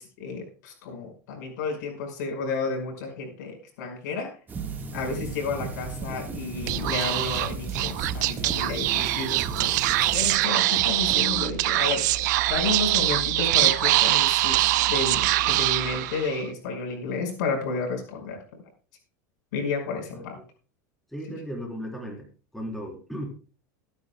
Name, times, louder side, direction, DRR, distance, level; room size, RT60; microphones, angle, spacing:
voice 1, 0.0-4.3 4.9-12.1 12.5-18.6 19.5-20.4, left 4 dB, 80° left, 2 dB, 5.4 m, -31 dB
sound 1, 4.5-10.4, right 4 dB, 20° right, 1.6 m, -36 dB
sound 2, 6.4-11.5, right 7 dB, 35° right, 1.4 m, -40 dB
Speech / Whispering, 6.6-16.4, right 17 dB, 75° right, 0.7 m, -23 dB
voice 2, 21.1-22.3 22.5-23.3, equal, ahead, 0 dB, 3.6 m, -35 dB
22.0 x 9.9 x 2.3 m, 0.36 s
supercardioid pair, 135°, 10 cm